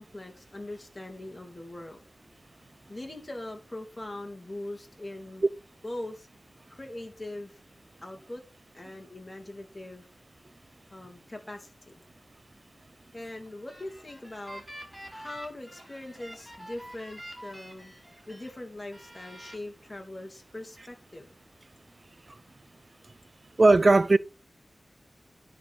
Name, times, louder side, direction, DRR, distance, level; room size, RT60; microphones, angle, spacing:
voice 1, 0.0-2.0 2.9-5.4 5.8-6.3 6.7-7.6 8.0-8.4 8.7-10.1 10.9-12.0 13.1-14.6 15.1-17.9 18.3-21.3, left 1 dB, 30° left, 2.6 m, -41 dB
sound 1, 13.5-18.5 18.9-19.6, equal, 10° right, 5.0 m, -46 dB
voice 2, 23.6-24.2, right 2 dB, 50° right, 0.5 m, -17 dB
10.0 x 4.9 x 4.1 m
cardioid pair, 40°, 0 cm